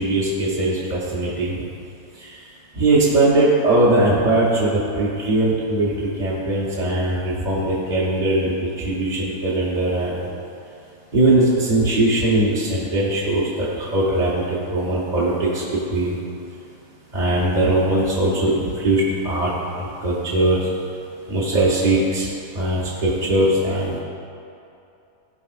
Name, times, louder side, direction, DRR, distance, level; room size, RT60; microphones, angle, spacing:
voice 1, 0.0-1.5 2.8-8.5 8.8-10.2 11.1-13.4 13.8-14.4 14.7-16.1 17.1-19.5 20.0-20.6 21.3-22.3 22.5-24.0, right 2 dB, 35° right, -8 dB, 0.8 m, -20 dB
12.5 x 4.6 x 2.5 m, 2.7 s
omnidirectional pair, 1.7 m